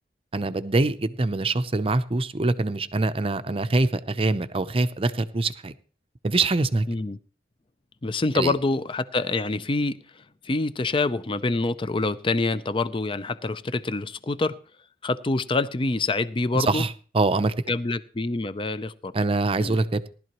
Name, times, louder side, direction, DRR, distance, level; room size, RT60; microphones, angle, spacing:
voice 1, 0.3-5.7 6.2-6.9 8.3-8.5 16.5-17.5 19.1-20.1, right 3 dB, 30° right, 11 dB, 0.6 m, -24 dB
voice 2, 6.9-7.2 8.0-14.6 15.0-16.8 17.7-19.1 19.6-19.8, left 3 dB, 30° left, 14 dB, 0.5 m, -26 dB
18.5 x 12.0 x 3.0 m, 0.39 s
head